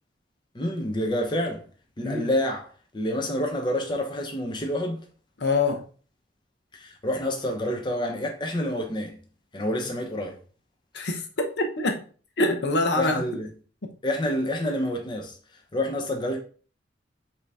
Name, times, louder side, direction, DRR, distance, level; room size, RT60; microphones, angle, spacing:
voice 1, 0.5-1.7 2.0-5.0 6.7-9.2 9.5-10.4 12.9-13.5 14.0-15.4 15.7-16.4, left 1 dB, 25° left, 0.7 m, -28 dB
voice 2, 5.4-5.8 10.9-11.2 11.6-12.0 12.4-13.2, left 2 dB, 65° left, 0.8 m, -24 dB
5.7 x 2.8 x 3.3 m
head